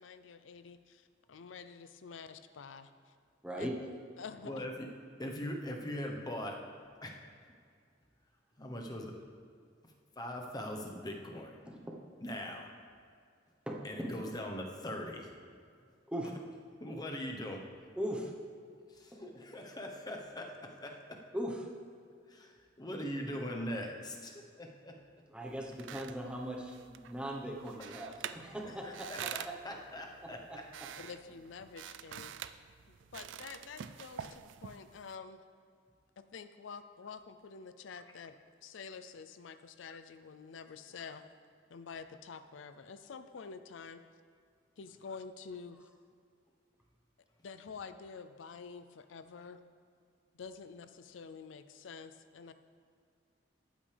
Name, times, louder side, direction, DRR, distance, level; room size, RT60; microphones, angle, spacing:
voice 1, 0.0-3.1 3.6-3.7 4.2-4.6 31.0-35.4 36.2-41.2 41.7-44.0 44.8-45.9 47.4-49.6 50.3-52.5, left 5 dB, 85° left, 11 dB, 0.5 m, -48 dB
voice 2, 4.4-4.9 5.2-6.6 7.0-7.2 8.6-9.2 9.8-11.6 12.2-12.7 13.8-15.3 16.8-17.6 18.9-21.2 22.3-25.0 27.8-28.0 28.7-30.6, left 1 dB, 20° left, 1 dB, 1.0 m, -41 dB
voice 3, 13.7-14.1 16.1-16.3 18.0-18.3 21.3-21.6 25.3-29.1 29.4-29.5 30.2-30.6, equal, 5° right, -1 dB, 1.1 m, -39 dB
sound 1, 25.5-35.1, right 9 dB, 75° right, 0.4 m, -47 dB
13.0 x 8.9 x 3.4 m, 2.2 s
head